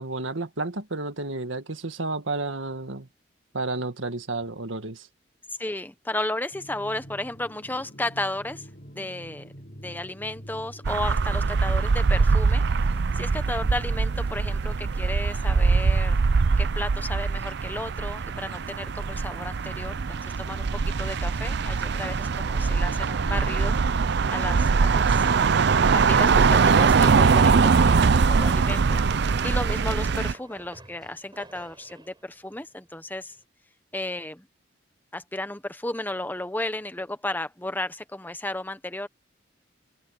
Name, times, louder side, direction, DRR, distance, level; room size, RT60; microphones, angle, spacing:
voice 1, 0.0-3.1 3.5-5.1, right 2 dB, 80° right, 1.9 m, -31 dB
voice 2, 5.6-8.7 8.9-9.5 9.8-12.6 13.1-16.2 16.6-20.7 21.0-23.8 24.3-25.2 25.9-33.4 33.9-34.5 35.1-39.1, left 1 dB, 10° left, 1.0 m, -33 dB
sound 1, 6.5-14.9, equal, 45° left, 6.8 m, -45 dB
sound 2, 10.8-30.3, right 5 dB, 60° right, 0.5 m, -22 dB
sound 3, 27.4-33.4, right 2 dB, 25° right, 5.3 m, -50 dB
head